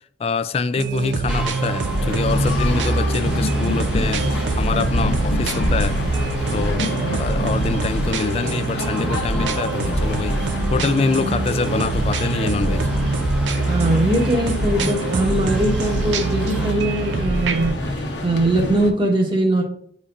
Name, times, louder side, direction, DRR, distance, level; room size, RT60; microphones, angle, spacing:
voice 1, 0.2-6.0 6.5-10.4 10.7-12.9, left 4 dB, 35° left, 0.3 m, -25 dB
sound 1, 0.8-17.7, right 3 dB, 85° right, 0.5 m, -24 dB
sound 2, 1.3-16.7, right 1 dB, 5° right, 0.8 m, -35 dB
sound 3, 1.8-18.9, left 1 dB, 80° left, 0.9 m, -27 dB
voice 2, 13.6-19.6, right 1 dB, 25° right, 1.2 m, -21 dB
9.7 x 4.2 x 2.5 m
head